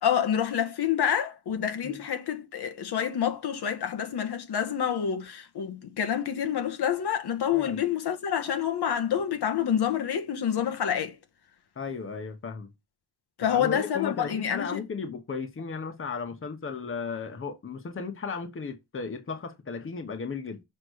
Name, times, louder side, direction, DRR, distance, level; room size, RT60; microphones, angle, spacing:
voice 1, 0.0-11.2 13.4-14.8, left 9 dB, 80° left, 1.4 m, -28 dB
voice 2, 11.8-12.7 13.4-20.6, left 5 dB, 35° left, 1.1 m, -35 dB
6.6 x 3.8 x 6.2 m
wide cardioid pair, 175°, 39 cm